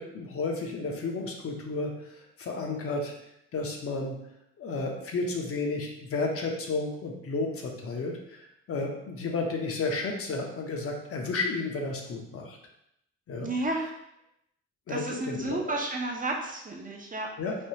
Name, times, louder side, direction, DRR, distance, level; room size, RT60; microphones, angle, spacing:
voice 1, 0.0-1.9 2.4-3.1 3.5-4.2 4.6-12.6 13.3-13.5 14.9-15.8 17.4-17.6, left 3 dB, 50° left, 1 dB, 0.6 m, -32 dB
voice 2, 13.4-13.9 14.9-17.3, right 2 dB, 30° right, 0 dB, 0.5 m, -32 dB
3.3 x 2.2 x 2.7 m, 0.79 s
cardioid pair, 90°, 30 cm